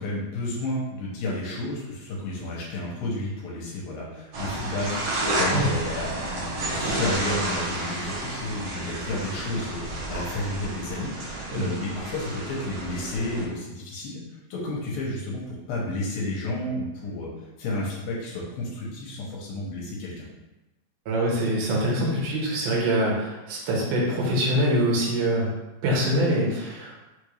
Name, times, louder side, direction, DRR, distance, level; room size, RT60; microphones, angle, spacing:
voice 1, 0.0-14.2 14.5-17.3 17.6-20.3, left 2 dB, 75° left, -4 dB, 2.6 m, -31 dB
sound 1, 4.3-13.4, right 2 dB, 65° right, 1.6 m, -31 dB
voice 2, 21.1-25.5 25.8-26.9, right 1 dB, 80° right, -4 dB, 2.9 m, -24 dB
6.1 x 2.6 x 3.2 m, 1.0 s
omnidirectional pair, 4.3 m